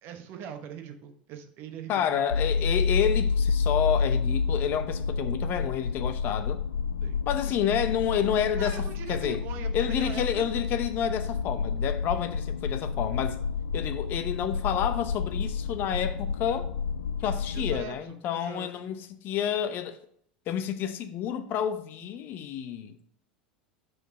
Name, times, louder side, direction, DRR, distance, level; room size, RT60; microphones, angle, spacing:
voice 1, 0.0-2.2 7.0-7.2 8.6-10.5 17.5-18.7, right 8 dB, 50° right, 1.2 m, -42 dB
voice 2, 1.9-6.6 7.3-9.4 9.7-13.4 13.7-16.7 17.2-20.0 20.5-23.0, left 9 dB, 45° left, 0.8 m, -29 dB
sound 1, 2.3-17.8, left 5 dB, 80° left, 0.4 m, -29 dB
6.2 x 5.3 x 5.0 m
figure-of-eight pair, 80°, 5 cm